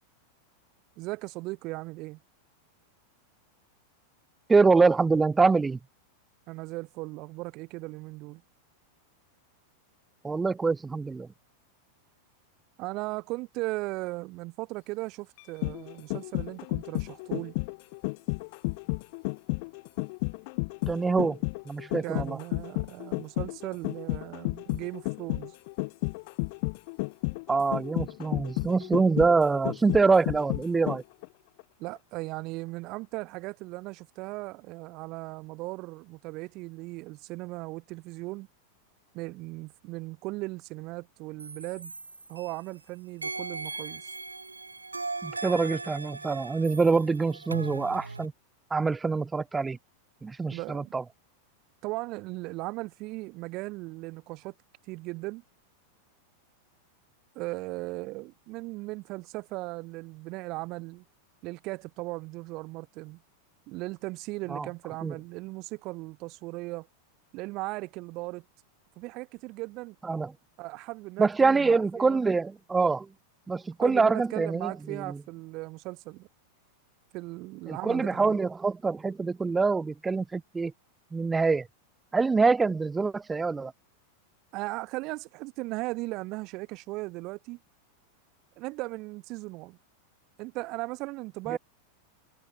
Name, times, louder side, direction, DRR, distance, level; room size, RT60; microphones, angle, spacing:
voice 1, 1.0-2.2 6.5-8.4 12.8-17.5 22.0-25.5 31.8-38.5 39.1-41.9 42.3-44.1 50.5-50.9 51.8-54.5 54.9-55.4 57.3-61.0 61.4-63.2 63.7-66.9 67.3-68.4 69.0-70.0 70.6-72.2 73.8-76.3 77.1-78.4 84.5-87.6 88.6-89.8 90.4-91.6, right 22 dB, 40° right, 0.9 m, -37 dB
voice 2, 4.5-5.8 10.2-11.3 20.9-21.4 21.7-22.4 27.5-31.0 45.2-48.3 48.7-49.8 50.2-51.0 64.5-64.7 65.0-65.1 70.0-70.3 71.2-73.1 73.5-74.7 77.7-80.7 81.1-81.7 82.1-83.7 91.5-91.6, right 4 dB, 10° right, 1.1 m, -25 dB
sound 1, 15.4-31.3 31.6-31.7, left 29 dB, 45° left, 1.6 m, -32 dB
sound 2, 41.4-42.8 43.2-48.3, right 3 dB, 80° right, 2.8 m, -38 dB
figure-of-eight pair, 90°, 0 cm